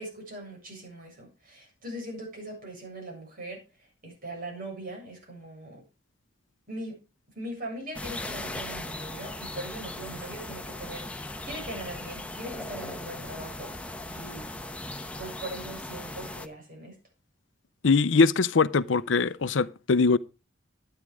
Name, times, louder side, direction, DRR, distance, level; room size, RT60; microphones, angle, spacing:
voice 1, 0.0-3.6 4.0-5.8 6.7-7.0 7.4-13.7 14.1-14.5 15.2-16.9, right 1 dB, 50° right, 7.4 m, -40 dB
sound 1, 7.9-16.5, left 1 dB, 5° left, 1.0 m, -38 dB
voice 2, 17.8-20.2, left 4 dB, 75° left, 0.6 m, -22 dB
12.0 x 8.8 x 4.8 m
head